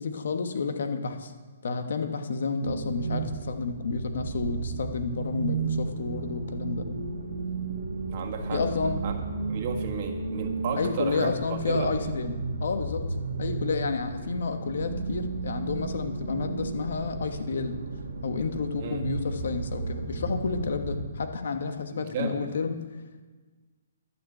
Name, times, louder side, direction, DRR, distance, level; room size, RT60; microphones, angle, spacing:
voice 1, 0.0-1.3 1.6-6.8 8.5-9.0 10.7-13.0 13.4-17.8 18.2-22.7, left 4 dB, 70° left, 7 dB, 1.3 m, -30 dB
sound 1, 2.6-21.0, right 4 dB, 80° right, 1.6 m, -33 dB
voice 2, 8.1-8.6 9.0-9.1 9.5-11.3 11.7-11.9 18.8-19.0 21.9-22.5, right 5 dB, 45° right, 3 dB, 1.6 m, -33 dB
12.0 x 6.5 x 7.9 m, 1.4 s
hypercardioid pair, 145°, 0 cm